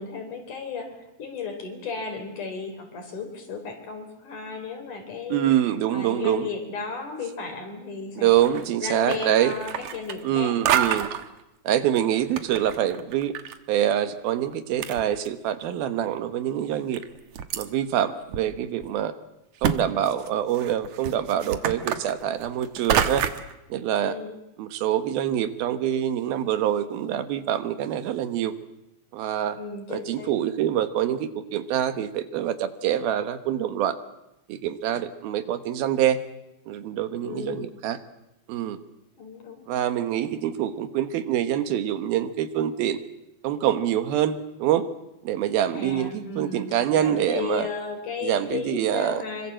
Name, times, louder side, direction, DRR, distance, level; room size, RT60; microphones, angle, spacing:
voice 1, 0.0-5.5 5.9-8.4 8.8-10.6 24.0-24.3 29.6-30.3 37.2-37.7 39.2-39.6 45.7-49.5, left 4 dB, 55° left, 5 dB, 5.3 m, -34 dB
voice 2, 5.3-6.5 8.2-9.5 10.2-11.1 11.6-13.4 13.7-17.0 17.5-19.1 19.6-23.3 23.7-24.2 24.6-28.5 29.1-29.6 29.9-34.0 34.5-36.2 36.7-38.0 38.5-38.8 39.7-43.0 43.4-44.9 45.2-47.7 48.2-49.2, right 10 dB, 80° right, 11 dB, 3.1 m, -25 dB
sound 1, 8.3-8.7 9.0-10.4 10.7-11.2 12.0-13.6 13.8-13.9 14.5-14.6 14.8-15.6 16.2-16.3 16.9-17.7 18.3-18.4 18.8-18.9 19.6-19.8 20.1-23.5, right 9 dB, 60° right, 2.3 m, -28 dB
26.0 x 24.5 x 7.6 m, 0.89 s
omnidirectional pair, 4.3 m